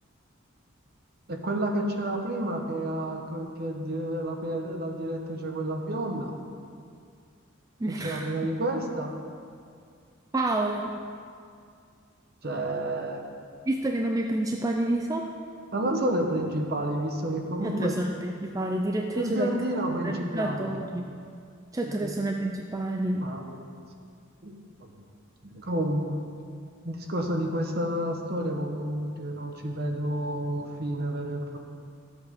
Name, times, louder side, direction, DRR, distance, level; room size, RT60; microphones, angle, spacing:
voice 1, 1.3-6.3 7.9-9.1 12.4-13.2 15.7-17.9 19.1-20.9 21.8-22.1 23.2-23.7 24.4-24.9 25.4-26.2 26.8-31.6, right 1 dB, 50° right, 3 dB, 1.2 m, -30 dB
voice 2, 7.8-8.3 10.3-11.0 13.7-15.3 17.6-19.6 20.0-21.1 21.7-23.3, right 1 dB, 15° right, 2 dB, 0.5 m, -29 dB
13.5 x 8.1 x 5.3 m, 2.3 s
head